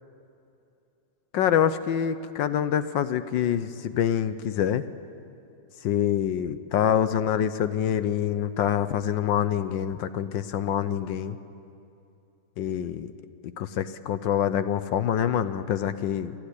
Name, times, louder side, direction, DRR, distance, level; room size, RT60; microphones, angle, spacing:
voice 1, 1.3-4.8 5.8-11.4 12.6-13.1 13.6-16.3, left 9 dB, 70° left, 12 dB, 1.3 m, -26 dB
29.0 x 12.0 x 9.9 m, 2.7 s
omnidirectional pair, 2.3 m